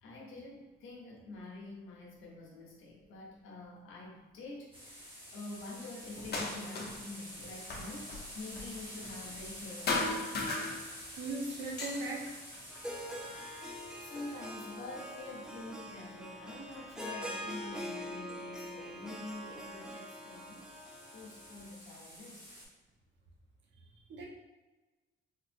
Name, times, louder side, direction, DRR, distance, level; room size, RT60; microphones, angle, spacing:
voice 1, 0.0-10.3 14.0-20.7 21.1-22.6, left 2 dB, 85° left, -2 dB, 0.9 m, -47 dB
sound 1, 4.7-16.2 19.1-22.7, equal, 25° right, 1.3 m, -49 dB
sound 2, 6.2-7.1 7.4-9.6 9.9-11.2 11.6-13.5 14.1-15.0 16.0-16.1 16.7-17.7, left 3 dB, 55° left, 0.8 m, -38 dB
voice 2, 11.1-12.3 24.1-24.3, right 2 dB, 70° right, -1 dB, 0.8 m, -38 dB
Harp, 12.7-21.7, equal, 5° right, 0.4 m, -44 dB
4.0 x 2.5 x 2.5 m, 1.2 s
cardioid pair, 90°, 20 cm